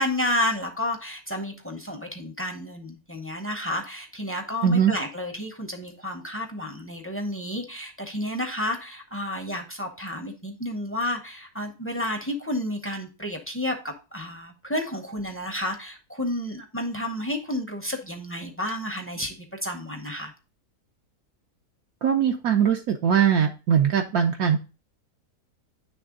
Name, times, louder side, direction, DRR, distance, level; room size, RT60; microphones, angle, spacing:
voice 1, 0.0-19.4 19.6-20.3, left 1 dB, 15° left, 4 dB, 0.6 m, -31 dB
voice 2, 4.6-4.9 22.0-24.6, right 8 dB, 70° right, 3 dB, 1.1 m, -21 dB
9.4 x 3.3 x 3.7 m, 0.31 s
omnidirectional pair, 1.7 m